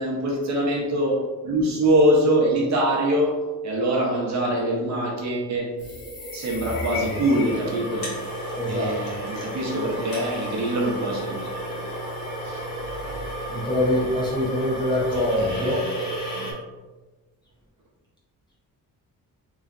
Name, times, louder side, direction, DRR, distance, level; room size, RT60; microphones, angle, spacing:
voice 1, 0.0-5.7 6.3-8.2 8.6-11.5 11.8-11.9 12.4-12.7 15.4-16.1 16.3-16.5, right 1 dB, 50° right, -2 dB, 0.9 m, -24 dB
sound 1, 5.8-16.5, equal, 75° left, 1.4 m, -32 dB
voice 2, 8.6-8.9 13.5-15.8, left 1 dB, 15° left, -6 dB, 0.9 m, -24 dB
3.9 x 3.1 x 2.6 m, 1.2 s
wide cardioid pair, 175°, 35 cm